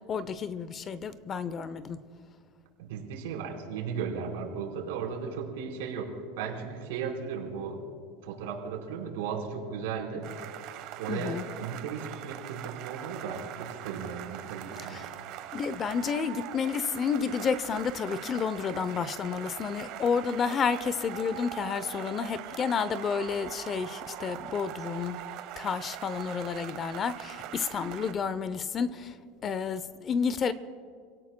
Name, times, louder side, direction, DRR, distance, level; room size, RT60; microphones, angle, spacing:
voice 1, 0.1-2.0 11.1-11.5 14.8-15.0 15.5-25.2 25.6-29.1 29.4-30.5, left 6 dB, 25° left, 15 dB, 0.6 m, -30 dB
voice 2, 2.8-7.8 8.2-10.3 11.0-15.0, right 6 dB, 80° right, -1 dB, 4.3 m, -36 dB
sound 1, 10.2-28.1, right 12 dB, 55° right, 1.1 m, -42 dB
29.5 x 17.5 x 2.2 m, 2.2 s
supercardioid pair, 140°, 0 cm